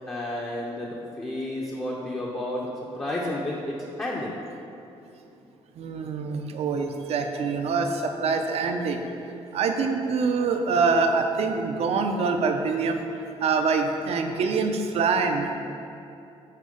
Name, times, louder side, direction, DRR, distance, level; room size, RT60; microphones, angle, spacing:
voice 1, 0.0-2.7 2.9-4.4, left 1 dB, 20° left, -4 dB, 0.7 m, -31 dB
voice 2, 5.8-9.1 9.5-13.0 13.4-15.5, right 4 dB, 65° right, 5 dB, 0.6 m, -25 dB
6.6 x 4.6 x 5.1 m, 2.7 s
cardioid pair, 150°, 11 cm